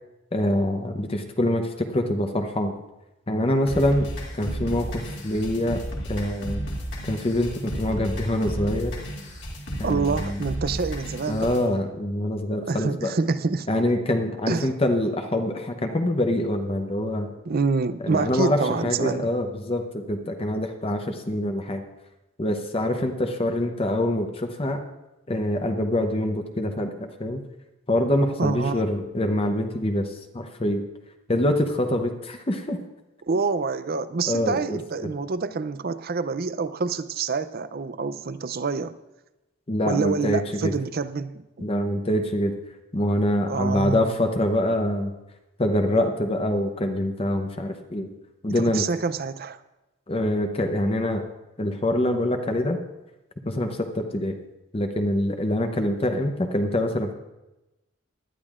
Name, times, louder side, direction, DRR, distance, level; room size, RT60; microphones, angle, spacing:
voice 1, 0.3-2.8 3.3-4.1 4.3-5.8 6.1-6.7 7.1-8.9 9.8-10.4 11.3-13.1 13.7-17.3 18.0-21.8 22.4-24.8 25.3-26.9 27.2-27.4 27.9-30.8 31.3-32.8 34.3-35.1 39.7-40.7 41.6-42.5 42.9-45.1 45.6-48.1 48.4-48.8 50.1-51.2 51.6-52.8 53.4-54.4 54.7-57.1, left 1 dB, 30° left, 5 dB, 0.8 m, -25 dB
sound 1, 3.7-11.7, equal, 60° left, 2.5 m, -33 dB
voice 2, 9.8-11.5 12.7-13.7 14.5-14.7 17.5-19.3 28.4-28.8 33.2-39.0 39.9-41.7 43.5-44.2 48.5-49.6, right 4 dB, 50° right, 14 dB, 0.5 m, -27 dB
19.0 x 12.0 x 2.5 m, 1.0 s
head